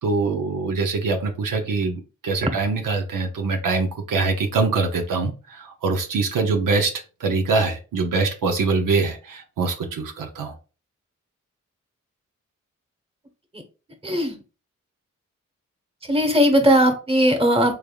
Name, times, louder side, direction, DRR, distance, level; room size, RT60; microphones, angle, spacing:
voice 1, 0.0-6.9 7.2-10.5, right 4 dB, 75° right, 3 dB, 0.7 m, -23 dB
voice 2, 14.0-14.4 16.1-17.8, equal, 15° right, 5 dB, 1.1 m, -18 dB
3.4 x 3.4 x 2.3 m, 0.33 s
cardioid pair, 45°, 33 cm